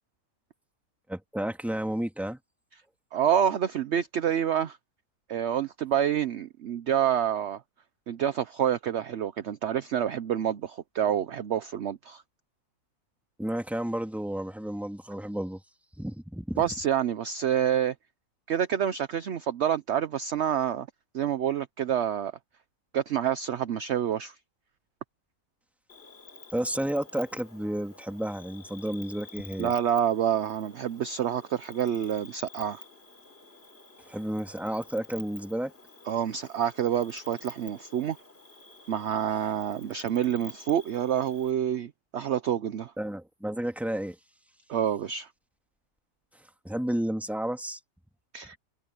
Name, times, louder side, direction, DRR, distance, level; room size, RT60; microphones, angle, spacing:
voice 1, 1.1-2.4 13.4-15.6 16.0-16.6 26.5-29.7 34.1-35.7 43.0-44.2 46.6-47.8, right 1 dB, ahead, 2.0 m, -31 dB
voice 2, 3.1-4.8 5.3-7.6 8.1-12.2 16.6-17.9 18.5-20.9 21.1-22.3 22.9-24.3 29.6-32.8 36.1-38.2 38.9-42.9 44.7-45.3 48.3-48.6, right 9 dB, 55° right, 0.9 m, -27 dB
Cricket, 25.9-41.5, left 3 dB, 40° left, 3.8 m, -50 dB
omnidirectional pair, 1.6 m